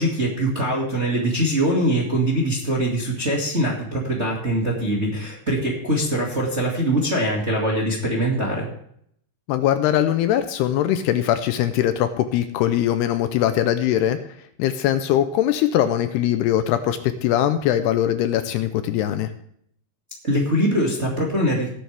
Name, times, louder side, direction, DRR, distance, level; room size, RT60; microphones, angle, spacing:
voice 1, 0.0-8.7 20.2-21.7, right 1 dB, 25° right, -2 dB, 1.4 m, -22 dB
voice 2, 9.5-14.2 14.6-19.3, left 11 dB, 80° left, 10 dB, 2.6 m, -21 dB
18.5 x 9.2 x 3.5 m, 0.68 s
omnidirectional pair, 5.0 m